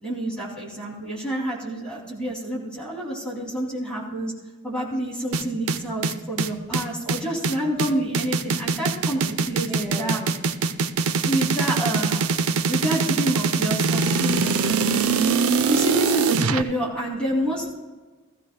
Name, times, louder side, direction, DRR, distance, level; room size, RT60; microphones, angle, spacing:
voice 1, 0.0-4.3 4.6-10.2 11.2-12.3 12.7-15.2 15.7-17.7, right 1 dB, 5° left, -5 dB, 2.7 m, -28 dB
sound 1, 5.3-16.6, right 5 dB, 90° right, 0.6 m, -23 dB
voice 2, 6.0-7.1 9.6-10.3 10.6-11.0 15.1-15.6, equal, 35° right, -6 dB, 3.8 m, -43 dB
15.0 x 14.5 x 2.3 m, 1.3 s
head